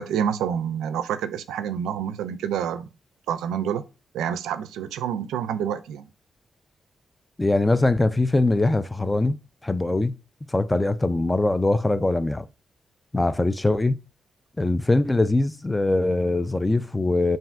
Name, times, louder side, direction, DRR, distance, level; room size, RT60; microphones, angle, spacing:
voice 1, 0.0-2.9 3.3-3.8 4.1-6.1, right 8 dB, 90° right, 0.4 m, -28 dB
voice 2, 7.4-9.4 9.6-10.2 10.5-12.5 13.1-14.0 14.6-17.4, left 2 dB, 15° left, 0.4 m, -22 dB
5.7 x 2.5 x 2.5 m
supercardioid pair, 60°, 0 cm